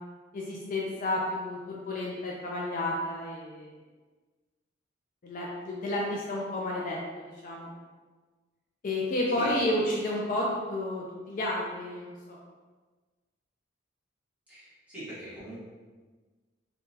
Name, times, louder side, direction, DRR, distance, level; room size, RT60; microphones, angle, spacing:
voice 1, 0.3-3.8 5.2-7.7 8.8-12.4, left 1 dB, 45° left, -3 dB, 0.4 m, -31 dB
voice 2, 14.5-15.6, right 1 dB, 10° right, -11 dB, 1.3 m, -42 dB
3.7 x 2.3 x 2.7 m, 1.3 s
head